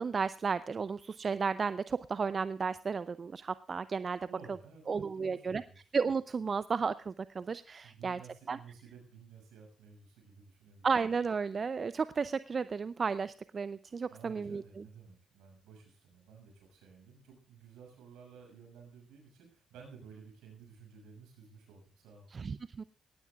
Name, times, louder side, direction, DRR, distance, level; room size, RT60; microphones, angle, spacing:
voice 1, 0.0-4.2 4.9-5.6 5.9-8.2 8.5-8.6 10.8-14.9 22.3-22.8, right 5 dB, 45° right, 15 dB, 0.5 m, -33 dB
voice 2, 4.3-5.9 7.8-10.9 14.1-22.3, right 6 dB, 75° right, 2 dB, 6.4 m, -54 dB
18.5 x 17.5 x 2.4 m, 0.39 s
hypercardioid pair, 40°, 0 cm